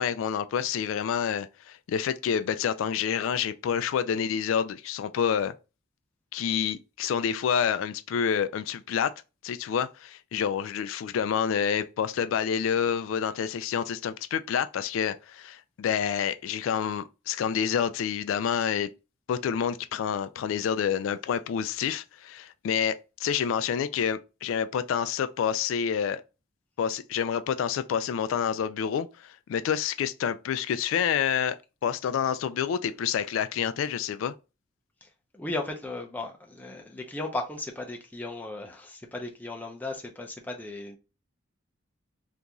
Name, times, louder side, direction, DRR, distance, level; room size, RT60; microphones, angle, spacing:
voice 1, 0.0-5.5 6.3-9.1 9.4-18.9 19.3-26.2 26.8-34.3, left 8 dB, 85° left, 0.3 m, -28 dB
voice 2, 35.0-41.0, left 2 dB, 10° left, 0.5 m, -36 dB
2.9 x 2.6 x 3.5 m
head